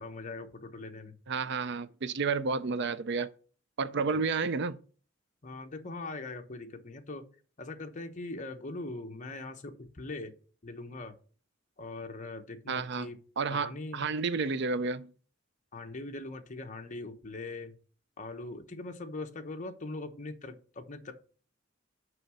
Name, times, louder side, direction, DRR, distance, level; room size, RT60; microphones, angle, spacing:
voice 1, 0.0-1.2 4.1-4.2 5.4-7.2 7.6-10.3 10.6-11.2 11.8-13.2 13.5-14.0 15.7-17.7 18.2-21.1, left 2 dB, 40° left, 1.0 m, -41 dB
voice 2, 1.3-3.3 3.8-4.8 12.7-13.1 13.4-15.1, right 4 dB, 65° right, 0.5 m, -31 dB
6.6 x 5.6 x 6.2 m
head